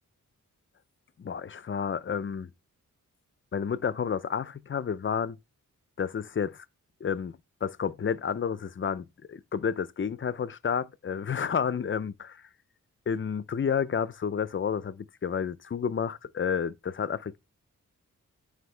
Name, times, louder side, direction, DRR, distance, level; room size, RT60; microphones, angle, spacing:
voice 1, 1.2-2.5 3.5-5.4 6.0-6.6 7.0-12.4 13.1-17.4, left 7 dB, 40° left, 0.5 m, -30 dB
9.9 x 5.0 x 3.3 m
wide cardioid pair, 125°, 32 cm